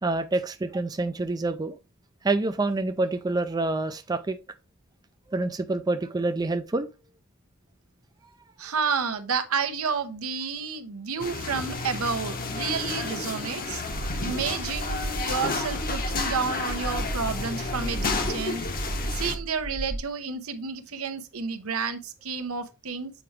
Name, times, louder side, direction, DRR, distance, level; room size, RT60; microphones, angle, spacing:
voice 1, 0.0-1.8 2.2-4.4 5.3-6.9 13.9-14.1, right 2 dB, 20° right, 0.4 m, -27 dB
voice 2, 8.6-13.8 14.2-18.6 19.1-23.1, right 5 dB, 80° right, 0.9 m, -30 dB
sound 1, 11.2-19.3, left 3 dB, 45° left, 1.0 m, -31 dB
sound 2, 13.9-20.0, right 1 dB, 40° right, 0.8 m, -34 dB
7.6 x 4.8 x 3.2 m
head